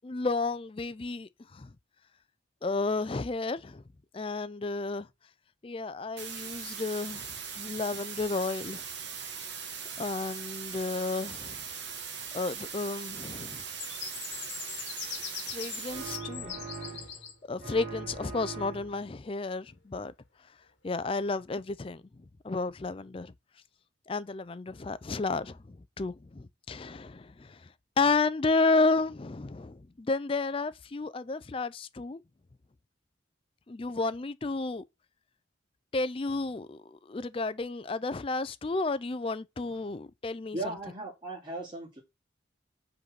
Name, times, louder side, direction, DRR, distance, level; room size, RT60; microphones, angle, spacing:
voice 1, 0.0-1.7 2.6-3.8 4.1-5.1 5.6-8.8 10.0-11.6 12.3-13.6 15.5-16.6 17.5-20.1 20.8-23.3 24.1-27.7 28.0-32.2 33.7-34.8 35.9-40.8, left 3 dB, 25° left, 0.4 m, -32 dB
sound 1, 6.2-16.2, right 6 dB, 60° right, 1.2 m, -40 dB
sound 2, 13.8-17.3, left 8 dB, 60° left, 1.5 m, -41 dB
sound 3, 15.9-17.3 17.6-19.1, right 4 dB, 40° right, 1.8 m, -41 dB
voice 2, 40.5-42.0, right 2 dB, 25° right, 2.5 m, -37 dB
5.3 x 4.0 x 5.9 m
head